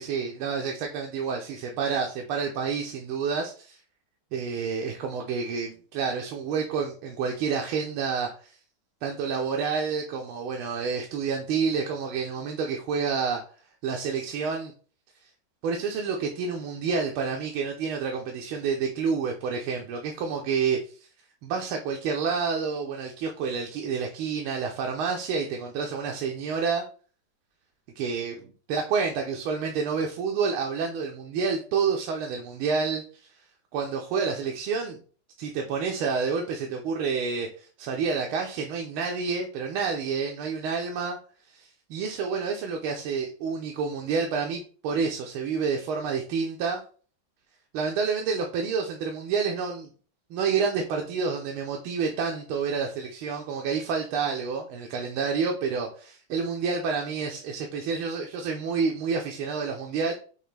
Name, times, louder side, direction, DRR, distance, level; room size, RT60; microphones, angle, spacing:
voice 1, 0.0-3.8 4.3-8.6 9.0-13.4 13.8-14.7 15.6-20.9 21.4-26.8 28.0-33.3 33.7-35.0 35.4-41.2 41.5-46.8 47.7-49.9 50.3-60.1, right 5 dB, 85° right, 2 dB, 1.5 m, -29 dB
5.7 x 2.9 x 3.2 m, 0.40 s
omnidirectional pair, 2.3 m